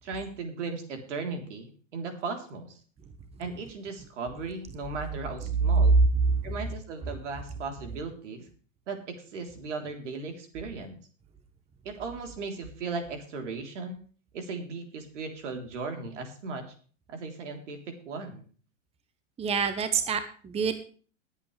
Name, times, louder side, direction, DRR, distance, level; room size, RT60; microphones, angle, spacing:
voice 1, 0.0-2.8 3.4-5.9 6.4-8.5 8.9-11.0 11.8-14.0 14.3-16.7 17.1-18.4, right 4 dB, 70° right, 5 dB, 3.7 m, -37 dB
voice 2, 19.4-20.7, right 6 dB, 15° right, 10 dB, 1.1 m, -28 dB
21.5 x 8.4 x 3.3 m, 0.41 s
hypercardioid pair, 105°, 38 cm